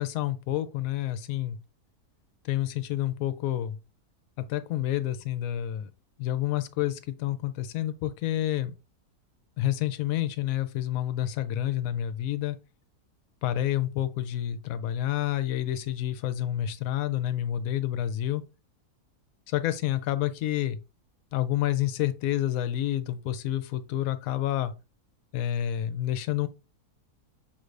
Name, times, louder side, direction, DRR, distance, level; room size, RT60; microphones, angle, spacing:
voice 1, 0.0-1.6 2.5-3.8 4.4-5.9 6.2-8.7 9.6-12.6 13.4-18.4 19.5-20.8 21.3-24.7 25.3-26.5, left 12 dB, 70° left, 1.0 m, -29 dB
6.0 x 3.2 x 2.5 m
omnidirectional pair, 1.6 m